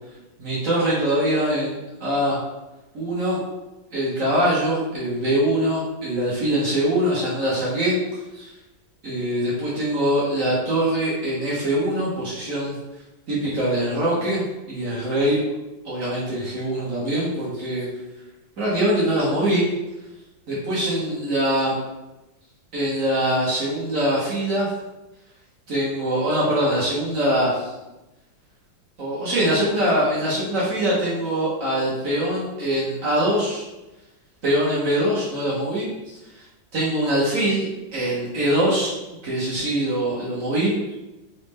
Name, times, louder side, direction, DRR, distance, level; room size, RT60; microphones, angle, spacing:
voice 1, 0.4-2.4 2.9-3.4 3.9-8.0 8.3-8.5 9.0-12.7 13.3-15.4 15.8-17.9 18.6-19.6 20.5-21.8 22.7-24.7 25.7-27.7 29.0-33.7 34.4-36.4 36.7-37.7 37.9-39.0 39.2-40.8, right 1 dB, 55° right, -7 dB, 1.0 m, -23 dB
4.0 x 2.0 x 3.5 m, 1.0 s
omnidirectional pair, 2.1 m